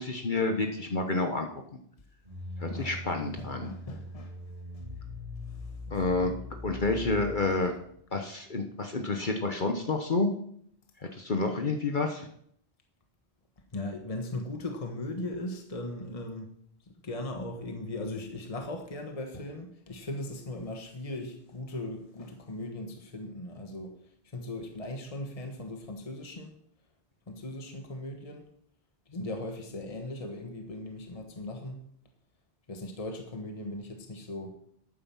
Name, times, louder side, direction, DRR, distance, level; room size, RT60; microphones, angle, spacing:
voice 1, 0.0-1.5 2.6-3.7 5.9-7.7 8.1-10.3 11.2-12.3, left 3 dB, 50° left, 4 dB, 1.2 m, -29 dB
sound 1, 2.2-7.7, left 1 dB, 55° right, 3.0 m, -41 dB
voice 2, 3.4-4.3 5.5-5.7 13.7-16.5 17.0-24.0 24.3-26.6 27.3-28.5 29.1-31.8 32.7-34.5, left 1 dB, 35° left, 4 dB, 1.4 m, -38 dB
12.0 x 9.2 x 5.7 m, 0.67 s
omnidirectional pair, 1.1 m